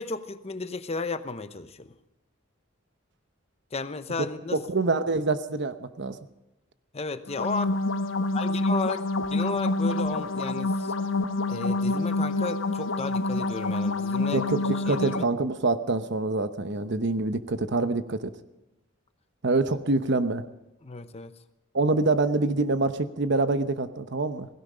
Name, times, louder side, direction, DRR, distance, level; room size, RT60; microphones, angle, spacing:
voice 1, 0.0-1.9 3.7-4.6 6.9-7.7 8.3-9.0 9.3-10.7 11.5-14.4 14.9-15.2 20.8-21.3, left 3 dB, 30° left, 11 dB, 0.8 m, -33 dB
voice 2, 4.5-6.1 14.3-18.3 19.4-20.4 21.7-24.5, right 3 dB, 60° right, 11 dB, 1.0 m, -26 dB
sound 1, 7.3-15.2, left 2 dB, 75° left, 1.0 m, -27 dB
17.0 x 16.5 x 5.1 m, 0.96 s
head